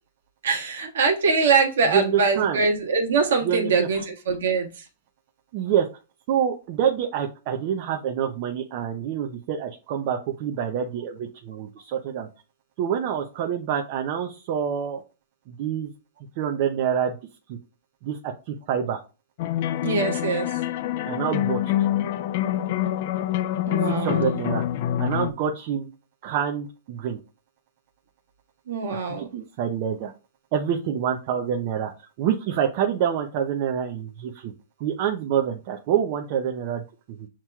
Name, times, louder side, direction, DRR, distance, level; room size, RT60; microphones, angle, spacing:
voice 1, 0.4-4.8 19.8-20.6 23.7-24.2 28.7-29.3, right 4 dB, 85° right, 1 dB, 1.5 m, -23 dB
voice 2, 1.9-2.6 3.4-3.9 5.5-5.9 6.3-12.3 12.8-15.0 15.5-15.9 16.4-17.1 17.5-17.6 18.0-19.0 21.0-21.6 23.9-24.6 25.0-25.9 26.2-27.2 29.2-30.1 30.5-31.9 32.2-34.5 34.8-36.8, right 8 dB, 45° right, 2 dB, 0.6 m, -26 dB
sound 1, 19.4-25.3, left 12 dB, 50° left, 0.4 m, -26 dB
7.3 x 3.0 x 2.3 m, 0.32 s
hypercardioid pair, 150°, 0 cm